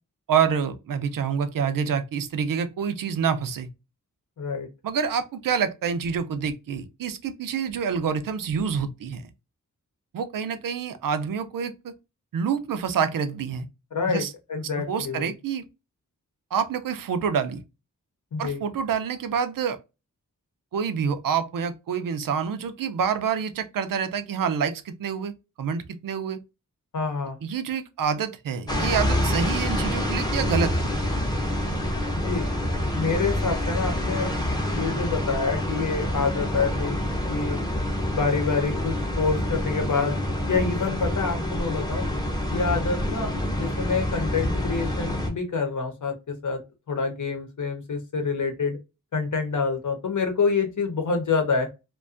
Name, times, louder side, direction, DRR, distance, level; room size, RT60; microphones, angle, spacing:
voice 1, 0.3-3.7 4.8-9.2 10.1-11.9 12.3-13.7 14.1-14.3 14.9-15.6 16.5-17.6 18.4-19.8 20.7-26.4 27.4-30.9, right 7 dB, 75° right, 0.5 m, -27 dB
voice 2, 4.4-4.7 13.9-15.3 18.3-18.6 26.9-27.4 32.3-32.5 33.0-34.3 34.7-37.0 37.3-37.6 38.1-40.2 40.5-42.1 42.5-43.3 43.6-46.6 46.9-48.8 49.1-51.7, left 4 dB, 65° left, 0.8 m, -27 dB
sound 1, 28.7-45.3, left 1 dB, 10° left, 0.7 m, -27 dB
2.4 x 2.2 x 2.4 m
wide cardioid pair, 80°, 33 cm